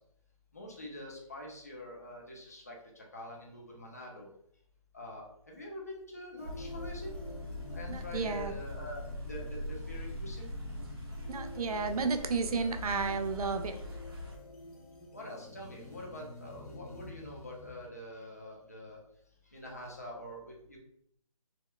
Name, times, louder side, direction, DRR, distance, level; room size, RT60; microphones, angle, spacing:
voice 1, 0.5-4.3 4.9-7.1 7.7-10.5 15.1-19.0 19.5-20.8, left 1 dB, 25° left, -2 dB, 0.4 m, -45 dB
sound 1, 6.4-17.9, left 1 dB, 85° left, 0.9 m, -49 dB
sound 2, 6.4-14.4, left 1 dB, 45° right, 0.6 m, -42 dB
voice 2, 7.9-8.5 11.3-13.8, right 4 dB, 90° right, 8 dB, 0.4 m, -32 dB
2.8 x 2.0 x 2.2 m, 0.70 s
hypercardioid pair, 175°, 18 cm